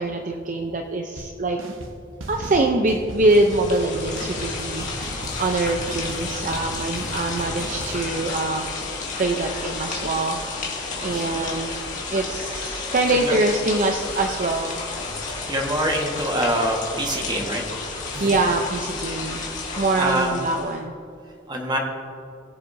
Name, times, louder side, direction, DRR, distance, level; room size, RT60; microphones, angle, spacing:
voice 1, 0.0-1.8 2.3-8.7 9.2-10.4 11.0-11.7 12.1-14.7 18.2-19.4 19.8-20.9, right 2 dB, 40° right, 3 dB, 0.6 m, -24 dB
sound 1, 1.2-1.3 1.6-1.9 2.2-8.0, right 1 dB, 75° right, 1.2 m, -36 dB
sound 2, 3.1-20.8, left 4 dB, 40° left, 2.0 m, -32 dB
voice 2, 10.9-11.3 13.1-13.3 15.5-17.6 18.1-18.3 19.9-20.3 21.5-21.8, right 1 dB, 20° right, 1 dB, 1.4 m, -25 dB
21.0 x 7.5 x 2.7 m, 2.6 s
head